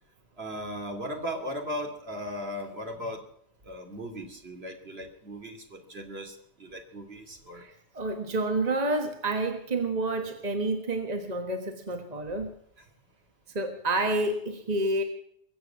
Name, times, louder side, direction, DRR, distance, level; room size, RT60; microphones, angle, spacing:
voice 1, 0.4-3.3 3.6-7.6, equal, 65° right, 4 dB, 3.0 m, -37 dB
voice 2, 7.5-12.5 13.5-15.0, right 2 dB, 40° right, 5 dB, 1.6 m, -29 dB
22.5 x 8.0 x 7.5 m, 0.70 s
omnidirectional pair, 1.1 m